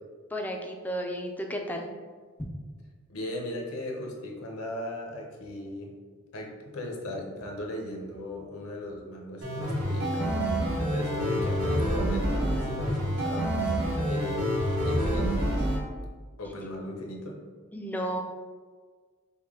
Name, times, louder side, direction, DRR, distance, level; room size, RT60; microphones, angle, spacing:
voice 1, 0.3-1.9 17.7-18.2, equal, 10° left, 2 dB, 0.4 m, -33 dB
voice 2, 3.1-5.9 6.3-10.4 10.9-15.7 16.4-17.4, left 1 dB, 80° left, 1 dB, 0.8 m, -38 dB
sound 1, 9.4-15.8, equal, 70° right, 1.3 m, -27 dB
5.3 x 2.2 x 3.6 m, 1.5 s
head